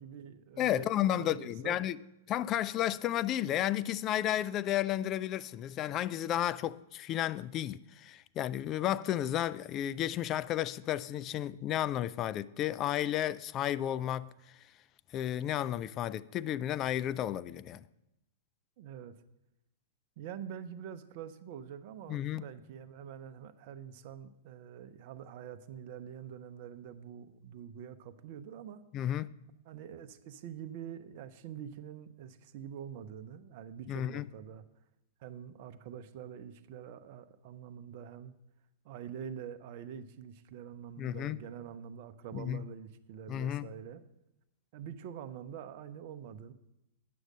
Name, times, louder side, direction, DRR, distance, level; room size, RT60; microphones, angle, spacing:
voice 1, 0.0-1.8 18.8-19.2 20.2-28.8 29.7-34.6 35.2-38.3 38.8-44.0 44.7-46.5, right 8 dB, 50° right, 0.7 m, -45 dB
voice 2, 0.6-2.0 2.3-14.3 15.1-17.8 22.1-22.5 28.9-29.3 33.9-34.3 41.0-41.4 42.3-42.6 43.3-43.7, left 12 dB, 35° left, 0.3 m, -32 dB
9.4 x 6.4 x 6.3 m
hypercardioid pair, 110°, 0 cm